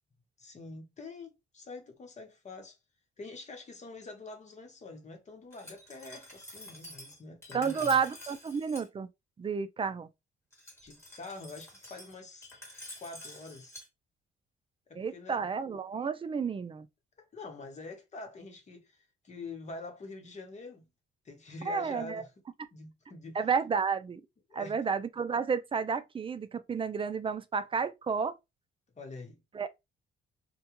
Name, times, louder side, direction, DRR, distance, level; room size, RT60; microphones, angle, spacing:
voice 1, 0.4-2.8 3.2-8.0 10.8-12.5 13.0-13.8 14.9-15.4 17.2-20.8 21.2-22.3 22.7-23.4 24.5-24.8 29.0-29.4, left 3 dB, 35° left, 0.9 m, -46 dB
Glass, 5.5-8.9 10.5-13.9, left 1 dB, 15° left, 1.4 m, -49 dB
voice 2, 7.5-9.1 9.4-10.1 15.0-16.9 21.7-22.2 23.3-24.2 24.5-28.3 29.5-29.7, right 6 dB, 25° right, 0.4 m, -31 dB
2.3 x 2.2 x 2.9 m
cardioid pair, 90°, 20 cm